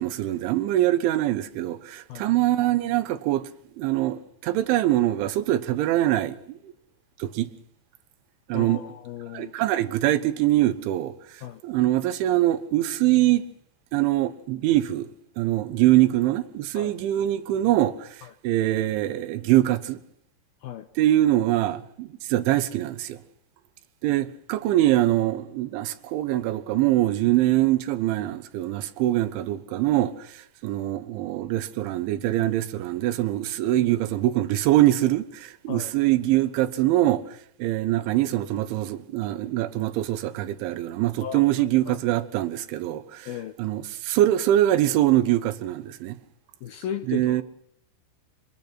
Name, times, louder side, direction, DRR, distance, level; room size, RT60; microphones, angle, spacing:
voice 1, 0.0-3.5 3.8-6.7 7.2-7.5 8.5-8.8 9.3-11.1 11.6-13.4 13.9-15.1 15.4-18.2 18.4-20.0 21.0-23.2 24.0-30.4 30.6-37.2 37.6-43.3 43.6-46.2 47.1-47.4, right 14 dB, 75° right, 3.5 m, -23 dB
voice 2, 8.5-9.5 11.4-11.6 16.7-16.9 18.2-18.3 20.6-20.9 35.7-35.9 41.2-42.0 43.3-43.5 46.6-47.4, left 9 dB, 80° left, 2.2 m, -36 dB
25.5 x 20.5 x 6.0 m
omnidirectional pair, 5.6 m